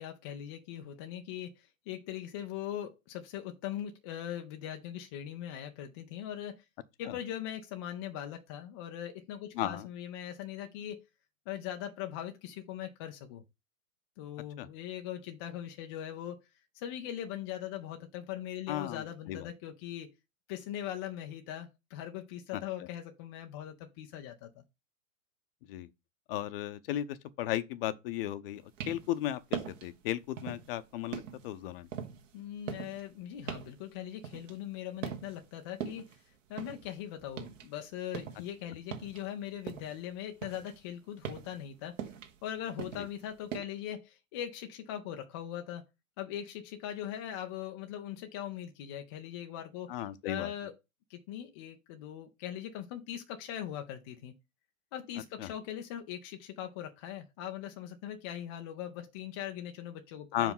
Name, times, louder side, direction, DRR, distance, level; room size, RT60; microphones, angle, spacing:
voice 1, 0.0-6.6 7.0-11.0 11.5-13.4 14.2-16.4 16.7-20.1 20.5-24.6 32.3-41.9 42.4-45.8 46.2-50.0 50.3-50.7 51.1-54.3 54.9-60.5, left 11 dB, 20° left, 0.3 m, -41 dB
voice 2, 9.6-9.9 14.6-14.7 18.7-19.5 22.8-22.9 25.7-25.9 26.3-31.9 43.0-43.1 49.9-50.5 55.4-55.5 60.3-60.5, left 13 dB, 40° left, 0.7 m, -35 dB
sound 1, 28.6-29.2 29.5-29.9 30.4-30.7 31.1-34.8 35.0-35.5 35.8-37.7 38.0-40.0 40.4-43.6, right 8 dB, 60° right, 1.5 m, -41 dB
5.3 x 4.8 x 5.3 m
hypercardioid pair, 115°, 42 cm